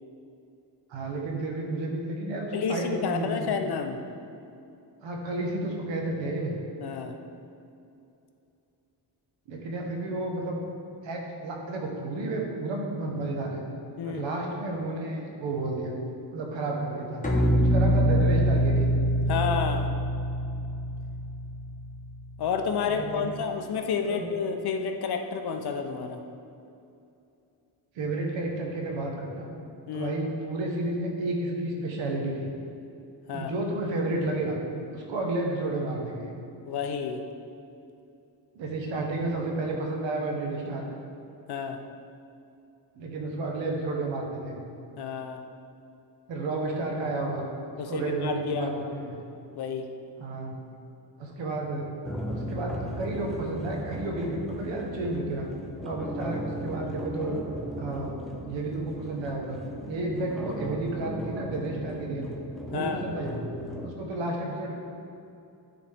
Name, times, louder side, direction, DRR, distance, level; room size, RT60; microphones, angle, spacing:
voice 1, 0.9-3.5 5.0-6.6 9.5-10.6 11.0-13.6 14.0-15.9 16.3-17.2 17.6-18.9 22.9-23.4 24.0-24.3 27.9-29.5 29.9-32.5 33.3-34.6 34.9-36.3 38.5-40.9 43.0-44.6 46.3-47.4 47.9-49.2 50.2-50.6 51.2-51.9 52.3-55.5 55.8-57.4 57.8-59.6 59.9-62.3 62.7-63.5 63.8-64.7, right 2 dB, 90° right, 0 dB, 1.2 m, -31 dB
voice 2, 2.5-4.0 6.8-7.1 14.0-14.2 19.3-19.9 22.4-26.2 29.9-30.1 33.3-33.5 36.7-37.2 41.5-41.8 45.0-45.4 47.8-48.7 49.5-49.9 62.7-63.1, left 6 dB, 60° left, 5 dB, 0.7 m, -30 dB
sound 1, 17.2-22.5, equal, 20° left, 1.0 m, -25 dB
sound 2, 52.0-63.9, equal, ahead, 0.5 m, -37 dB
10.0 x 4.1 x 3.5 m, 2.7 s
cardioid pair, 120°, 44 cm